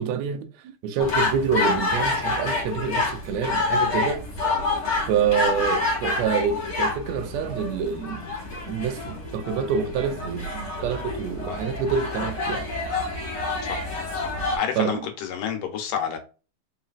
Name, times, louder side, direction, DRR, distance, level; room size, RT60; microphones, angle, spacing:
voice 1, 0.0-4.2 5.1-8.3 8.7-12.7 14.8-15.1, right 6 dB, 75° right, 1.7 m, -27 dB
sound 1, 1.0-14.6, left 3 dB, 45° left, 2.3 m, -27 dB
voice 2, 14.2-16.2, left 8 dB, 85° left, 2.5 m, -30 dB
4.8 x 4.1 x 2.4 m
omnidirectional pair, 3.7 m